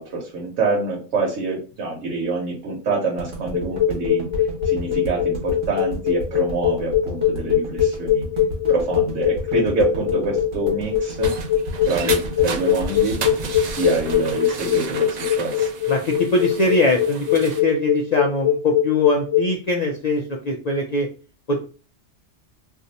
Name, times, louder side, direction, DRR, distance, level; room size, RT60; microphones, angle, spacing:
voice 1, 0.0-4.2 4.6-8.2 8.7-11.3 11.8-13.2 13.7-15.7, right 3 dB, 90° right, -2 dB, 1.1 m, -26 dB
sound 1, 3.2-15.4, equal, 45° right, 1.1 m, -32 dB
sound 2, 3.5-19.5, left 10 dB, 85° left, 1.0 m, -21 dB
sound 3, 10.8-17.6, right 6 dB, 65° right, 0.4 m, -33 dB
voice 2, 15.9-21.1 21.5-21.6, left 2 dB, 65° left, 0 dB, 0.4 m, -22 dB
2.6 x 2.3 x 3.9 m, 0.37 s
omnidirectional pair, 1.2 m